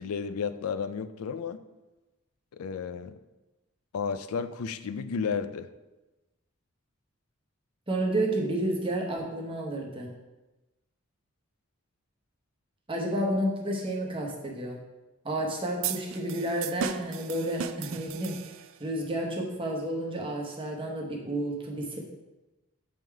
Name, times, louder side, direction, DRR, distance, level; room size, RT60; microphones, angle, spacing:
voice 1, 0.0-1.6 2.5-3.2 3.9-5.7, left 6 dB, 80° left, 12 dB, 0.4 m, -32 dB
voice 2, 7.9-10.1 12.9-14.8 15.2-18.4 18.8-22.0, right 1 dB, 25° right, 0 dB, 0.8 m, -31 dB
sound 1, 15.8-18.9, right 9 dB, 60° right, 0.3 m, -36 dB
7.6 x 3.7 x 4.6 m, 1.1 s
head